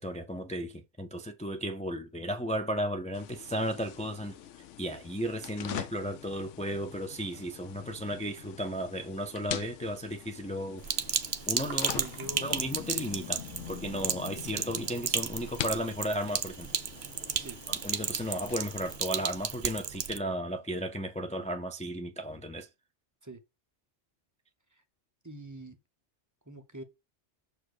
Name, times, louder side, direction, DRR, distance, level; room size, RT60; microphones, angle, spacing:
voice 1, 0.0-4.4 4.8-10.8 11.5-12.1 12.4-13.4 13.7-16.7 17.7-22.7, equal, 10° left, 0.3 m, -34 dB
sound 1, 3.1-19.0, left 11 dB, 90° left, 0.9 m, -44 dB
Sink (filling or washing), 10.8-20.2, right 8 dB, 50° right, 0.7 m, -34 dB
voice 2, 11.9-12.5 17.4-17.6 23.2-23.4 24.7-24.8 25.2-25.8 26.5-26.8, right 1 dB, 15° right, 0.8 m, -44 dB
6.6 x 4.3 x 4.8 m
omnidirectional pair, 1.2 m